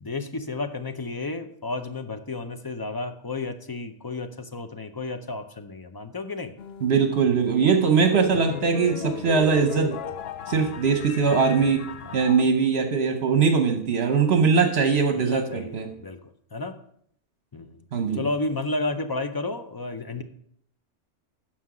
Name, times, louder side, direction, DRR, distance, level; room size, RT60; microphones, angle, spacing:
voice 1, 0.0-6.5 12.0-12.2 15.1-16.2 16.5-16.8 17.5-17.8 18.1-20.2, left 3 dB, 25° left, 8 dB, 0.5 m, -32 dB
sound 1, 6.6-12.4, left 8 dB, 65° left, 0.8 m, -36 dB
voice 2, 6.8-10.0 10.5-11.9 12.1-15.9 17.9-18.2, right 5 dB, 65° right, 5 dB, 1.1 m, -21 dB
9.7 x 6.5 x 4.8 m, 0.66 s
omnidirectional pair, 1.2 m